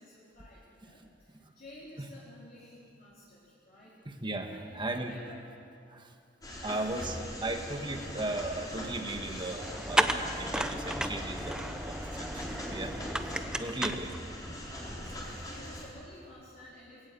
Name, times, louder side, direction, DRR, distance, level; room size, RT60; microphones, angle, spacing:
voice 1, 0.0-5.5 6.5-6.9 12.9-13.9 14.8-17.1, left 1 dB, 50° left, -8 dB, 4.1 m, -53 dB
voice 2, 4.0-5.2 5.9-6.1 6.6-12.9 13.6-14.1, right 2 dB, 25° right, 5 dB, 1.4 m, -37 dB
sound 1, 6.4-15.8, equal, 20° left, 4.0 m, -42 dB
sound 2, 9.6-14.6, right 1 dB, 5° right, 0.7 m, -33 dB
20.0 x 17.5 x 8.4 m, 2.5 s
head